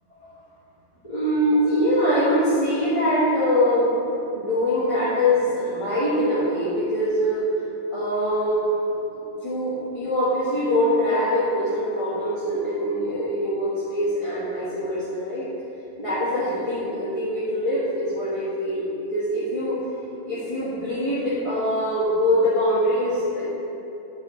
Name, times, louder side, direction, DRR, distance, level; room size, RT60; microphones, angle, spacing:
voice 1, 1.0-3.9 4.3-7.4 7.9-8.6 9.4-15.5 16.0-19.8 20.2-23.5, equal, 25° left, -13 dB, 1.5 m, -23 dB
9.0 x 5.3 x 3.1 m, 2.9 s
omnidirectional pair, 1.2 m